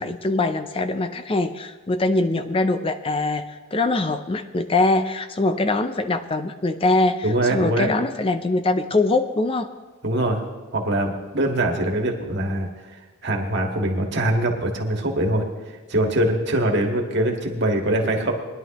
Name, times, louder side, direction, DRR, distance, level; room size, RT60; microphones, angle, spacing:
voice 1, 0.0-9.7, left 2 dB, 25° left, 9 dB, 0.4 m, -23 dB
voice 2, 7.2-7.9 10.0-10.4 10.7-18.3, right 1 dB, 55° right, 2 dB, 1.7 m, -23 dB
21.0 x 11.0 x 3.0 m, 1.3 s
head